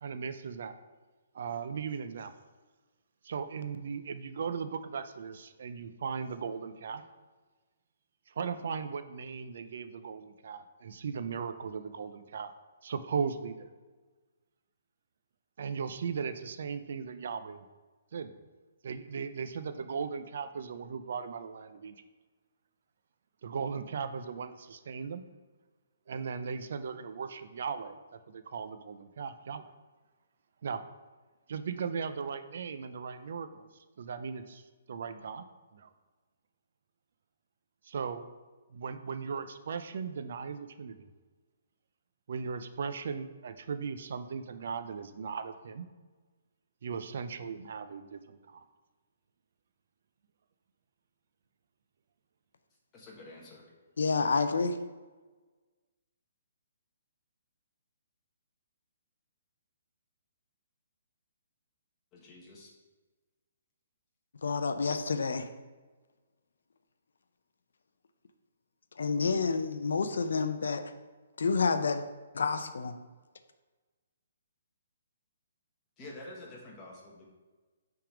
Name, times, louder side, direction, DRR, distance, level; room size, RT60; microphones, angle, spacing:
voice 1, 0.0-0.7 1.3-2.3 3.2-7.0 8.3-12.5 12.8-13.7 15.6-17.7 18.1-18.3 18.8-22.0 23.4-25.2 26.1-29.7 30.6-30.8 31.5-33.7 34.0-34.6 34.9-35.4 35.7-35.9 37.8-38.2 38.7-41.1 42.3-45.9 46.8-48.6, right 6 dB, 60° right, 10 dB, 0.4 m, -37 dB
voice 2, 52.9-53.7 62.1-62.7 76.0-77.3, left 2 dB, 20° left, -3 dB, 1.3 m, -48 dB
voice 3, 54.0-54.8 64.4-65.5 69.0-70.9 71.4-72.0 72.3-72.9, left 4 dB, 80° left, 9 dB, 0.4 m, -29 dB
5.7 x 3.5 x 4.9 m, 1.3 s
hypercardioid pair, 160°, 0 cm